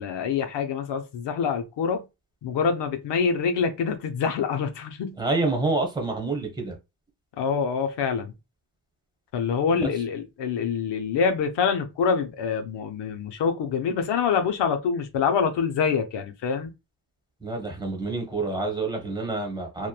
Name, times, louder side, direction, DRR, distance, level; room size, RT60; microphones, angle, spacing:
voice 1, 0.0-2.0 2.4-5.2 7.4-8.3 9.3-16.7, left 6 dB, 90° left, 0.5 m, -25 dB
voice 2, 5.2-6.7 9.7-9.9 17.4-19.9, right 3 dB, 10° right, 0.9 m, -27 dB
2.9 x 2.1 x 2.2 m
cardioid pair, 95°, 41 cm